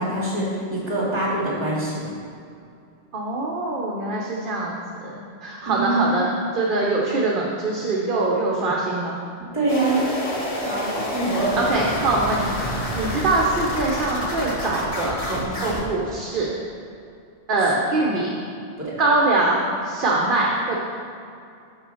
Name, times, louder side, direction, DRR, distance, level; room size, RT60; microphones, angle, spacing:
voice 1, 0.0-2.0 5.7-6.0 9.5-10.0 10.6-11.6 18.8-18.9, right 2 dB, 35° right, -6 dB, 2.3 m, -24 dB
voice 2, 3.1-9.2 11.6-16.6 17.5-18.3 19.0-20.8, right 2 dB, 50° right, -3 dB, 1.0 m, -23 dB
sound 1, 9.7-15.8, equal, 35° left, 1.3 m, -28 dB
6.9 x 5.7 x 5.5 m, 2.5 s
omnidirectional pair, 1.1 m